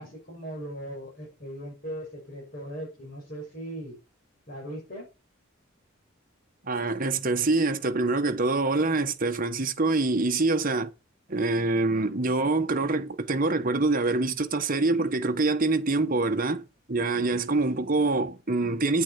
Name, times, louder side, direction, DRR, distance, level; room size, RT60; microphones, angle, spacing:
voice 1, 0.0-4.0 4.5-5.1, right 1 dB, 45° left, 6.4 m, -39 dB
voice 2, 6.6-10.9 11.3-19.0, right 3 dB, 40° right, 1.2 m, -25 dB
9.7 x 8.6 x 5.7 m
head